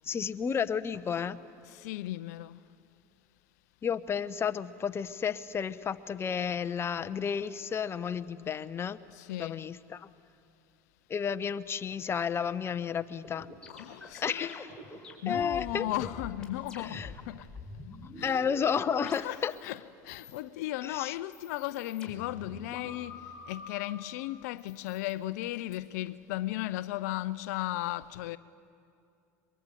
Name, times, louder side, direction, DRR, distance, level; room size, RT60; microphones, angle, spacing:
voice 1, 0.0-1.4 3.8-9.0 9.4-10.1 11.1-13.5 14.2-14.8 15.3-15.9 16.8-17.1 18.2-19.5 20.8-21.1, left 7 dB, 25° left, 0.9 m, -32 dB
voice 2, 1.6-2.6 9.1-9.6 13.7-14.6 15.2-17.5 18.2-18.6 19.0-28.4, left 16 dB, 75° left, 0.6 m, -36 dB
sound 1, 13.2-17.2 17.4-19.8 20.1-20.7 21.2-23.9 24.6-25.8, left 2 dB, 10° left, 5.4 m, -46 dB
22.5 x 22.5 x 9.0 m
hypercardioid pair, 95°, 9 cm